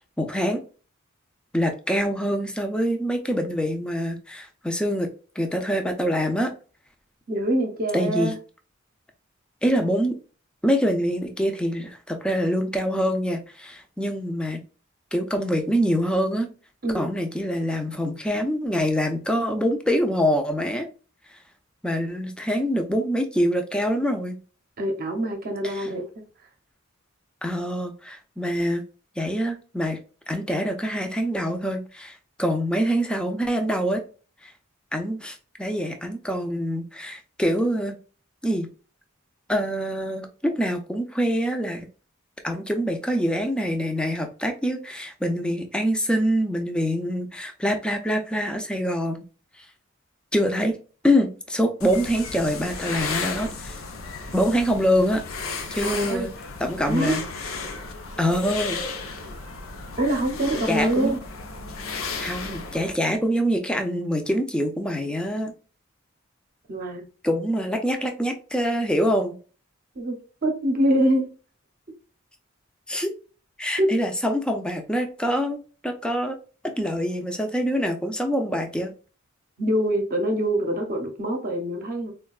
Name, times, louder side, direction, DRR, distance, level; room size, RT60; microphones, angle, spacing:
voice 1, 0.2-0.6 1.5-5.1 5.4-6.5 7.9-8.3 9.6-10.2 10.6-14.6 15.1-16.5 16.9-20.9 21.8-24.4 25.6-25.9 27.4-28.8 29.2-30.0 30.3-34.0 34.9-38.0 38.4-38.7 39.5-41.9 42.4-49.2 50.3-50.8 51.0-53.8 54.3-55.2 55.7-56.3 56.6-57.2 58.2-58.8 60.7-61.1 62.2-65.5 67.2-69.4 72.9-73.1 73.6-76.4 76.8-78.9, equal, 5° left, 0.4 m, -25 dB
voice 2, 7.3-8.3 16.8-17.1 24.8-26.1 55.8-56.3 56.8-57.2 60.0-61.2 66.7-67.1 70.0-71.3 73.8-73.9 79.6-82.1, right 1 dB, 45° right, 0.7 m, -24 dB
sound 1, 51.8-62.9, left 4 dB, 75° left, 0.6 m, -34 dB
3.8 x 2.2 x 2.3 m
head